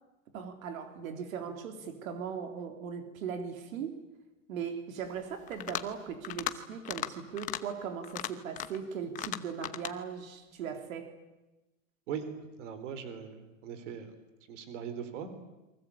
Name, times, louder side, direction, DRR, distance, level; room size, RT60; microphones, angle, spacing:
voice 1, 0.3-4.0 4.5-11.1, right 7 dB, 90° right, 6 dB, 3.8 m, -39 dB
sound 1, 5.5-5.9 6.2-6.6 6.8-7.1 7.4-7.6 8.0-8.8 9.2-9.9, left 14 dB, 20° left, 0.9 m, -36 dB
voice 2, 12.6-14.1 14.5-15.3, right 7 dB, 65° right, 11 dB, 4.1 m, -40 dB
29.0 x 23.5 x 8.7 m, 1.0 s
supercardioid pair, 175°, 40 cm